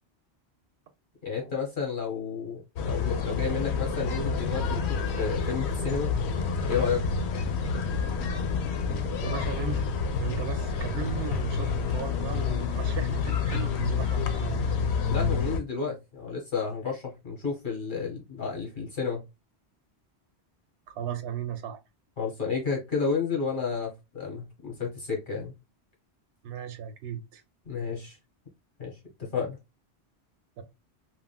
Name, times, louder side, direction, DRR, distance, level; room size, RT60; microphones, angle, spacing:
voice 1, 1.2-6.1 6.6-7.0 15.1-19.2 22.2-25.5 27.6-28.2 28.8-29.6, left 5 dB, 50° left, 1.3 m, -31 dB
sound 1, 2.8-15.6, left 5 dB, 85° left, 0.9 m, -28 dB
voice 2, 9.2-14.8 20.9-21.8 26.4-27.4 30.6-30.7, right 9 dB, 70° right, 0.8 m, -36 dB
3.5 x 2.2 x 2.2 m
omnidirectional pair, 1.1 m